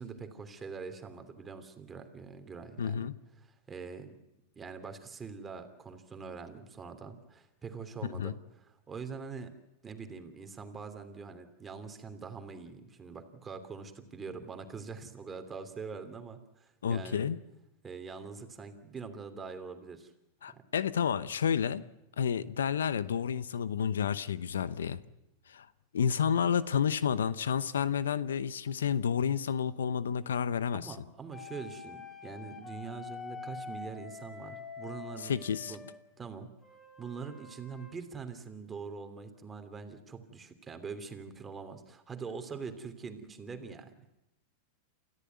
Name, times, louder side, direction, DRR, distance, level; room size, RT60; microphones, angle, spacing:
voice 1, 0.0-3.1 3.4-4.2 4.5-9.6 9.8-17.3 17.8-20.1 20.5-20.6 30.7-35.8 36.2-36.5 37.0-43.9, right 5 dB, 20° right, 7 dB, 3.0 m, -44 dB
voice 2, 2.8-3.1 8.0-8.3 16.8-17.4 20.4-21.8 22.2-25.0 25.5-25.7 25.9-30.9 35.2-35.8, left 7 dB, 80° left, 18 dB, 0.8 m, -30 dB
sound 1, 31.3-36.0 36.6-37.9, left 5 dB, 20° left, 7.6 m, -46 dB
28.5 x 14.0 x 9.5 m, 0.88 s
hypercardioid pair, 100°, 0 cm